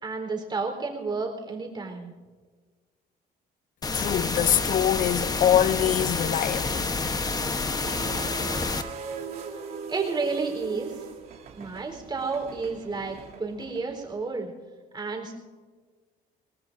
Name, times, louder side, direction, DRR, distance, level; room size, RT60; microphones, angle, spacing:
voice 1, 0.0-2.1 9.9-11.1 11.6-14.5 14.9-15.4, right 4 dB, 25° right, 4.1 m, -31 dB
sound 1, 3.8-8.8, left 3 dB, 20° left, 1.1 m, -28 dB
voice 2, 3.9-6.9, left 10 dB, 50° left, 0.6 m, -24 dB
sound 2, 7.8-14.2, right 5 dB, 60° right, 2.8 m, -40 dB
27.5 x 19.0 x 2.7 m
cardioid pair, 110°, 17 cm